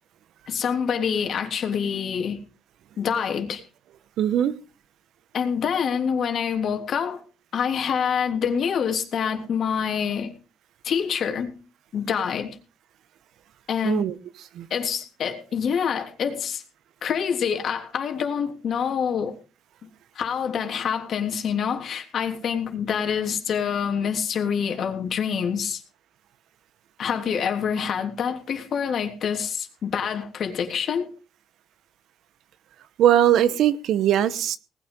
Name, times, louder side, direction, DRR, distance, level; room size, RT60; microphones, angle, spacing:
voice 1, 0.5-2.4 3.0-3.6 5.3-7.2 7.5-10.3 10.8-11.5 11.9-12.6 13.7-14.1 14.7-16.6 17.0-19.3 20.1-25.8 27.0-31.1, left 7 dB, 65° left, 3.2 m, -26 dB
voice 2, 4.2-4.6 13.8-14.1 14.5-14.7 33.0-34.6, right 11 dB, 80° right, 1.1 m, -20 dB
19.5 x 9.4 x 5.4 m
cardioid pair, 90°, 0 cm